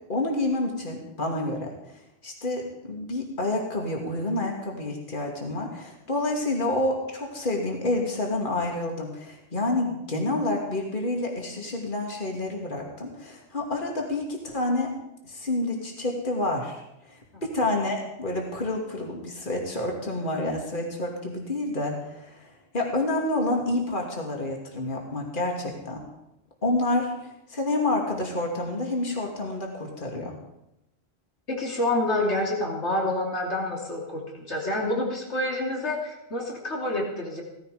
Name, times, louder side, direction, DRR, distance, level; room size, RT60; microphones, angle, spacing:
voice 1, 0.1-1.7 2.2-14.9 15.2-16.8 17.1-26.0 26.6-30.4, left 2 dB, 50° left, 0 dB, 2.7 m, -28 dB
voice 2, 31.5-37.4, left 1 dB, 90° left, -1 dB, 3.3 m, -28 dB
17.5 x 15.0 x 5.0 m, 0.87 s
omnidirectional pair, 1.1 m